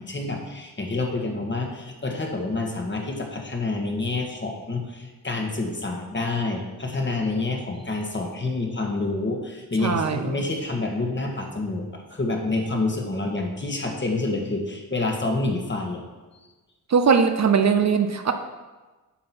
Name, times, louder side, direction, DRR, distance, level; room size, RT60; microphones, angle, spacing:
voice 1, 0.0-16.0, left 2 dB, 30° left, 2 dB, 1.6 m, -28 dB
voice 2, 9.8-10.4 16.9-18.3, right 6 dB, 50° right, 7 dB, 0.7 m, -20 dB
10.5 x 3.9 x 6.0 m, 1.2 s
cardioid pair, 70°, 35 cm